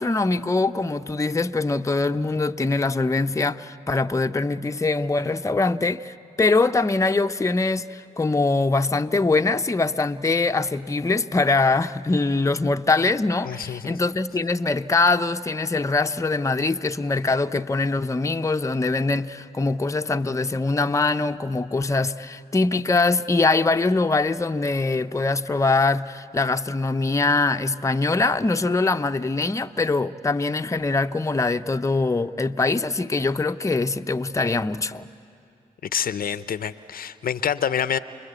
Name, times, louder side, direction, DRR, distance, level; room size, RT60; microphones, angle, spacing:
voice 1, 0.0-35.1, left 3 dB, 20° left, 0.7 m, -23 dB
voice 2, 13.4-14.0 35.9-38.0, left 8 dB, 60° left, 0.7 m, -27 dB
29.0 x 21.0 x 8.2 m
supercardioid pair, 45°, 17 cm